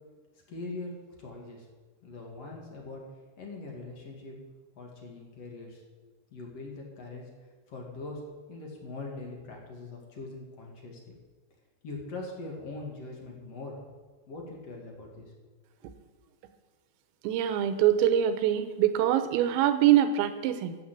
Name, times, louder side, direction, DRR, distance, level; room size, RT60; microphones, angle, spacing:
voice 1, 0.5-0.9 1.2-1.7 2.0-3.0 3.4-4.4 4.8-5.8 6.3-7.3 7.7-8.2 8.5-11.2 11.8-13.8 14.3-15.3, left 3 dB, 40° left, -1 dB, 2.5 m, -41 dB
voice 2, 17.2-20.8, right 11 dB, 85° right, 10 dB, 3.6 m, -24 dB
13.5 x 8.2 x 8.3 m, 1.3 s
omnidirectional pair, 6.0 m